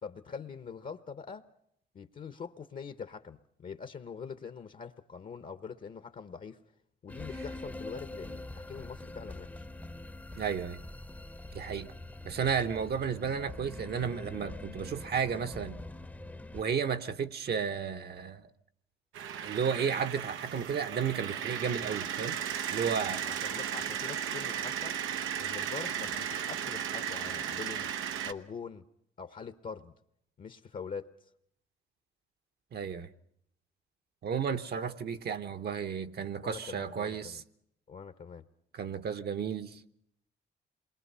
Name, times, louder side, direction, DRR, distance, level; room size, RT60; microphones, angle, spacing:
voice 1, 0.0-1.5 1.9-6.6 7.0-9.6 21.8-21.9 23.2-25.0 25.4-27.9 28.2-28.8 29.2-29.9 30.4-31.1 36.4-37.4 37.9-38.4, left 6 dB, 45° left, 1.0 m, -44 dB
sound 1, 7.1-16.6, left 2 dB, 10° left, 0.8 m, -44 dB
voice 2, 10.4-10.8 11.5-11.9 12.2-15.8 16.5-18.5 19.4-22.4 22.7-23.3 32.7-33.1 34.2-37.4 38.7-39.8, right 7 dB, 55° right, 1.1 m, -33 dB
sound 2, 19.1-28.3, right 9 dB, 90° right, 1.0 m, -35 dB
27.5 x 22.0 x 5.6 m
cardioid pair, 90°, 20 cm